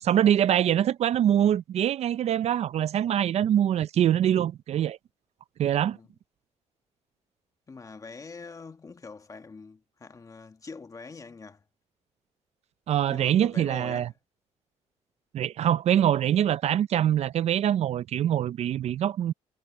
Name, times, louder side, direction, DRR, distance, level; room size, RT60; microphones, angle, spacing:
voice 1, 0.0-5.0 5.6-6.0 12.9-14.1 15.3-19.3, right 10 dB, 60° right, 0.5 m, -24 dB
voice 2, 7.7-11.6 13.1-14.2, left 4 dB, 30° left, 1.4 m, -44 dB
cardioid pair, 115°, 12 cm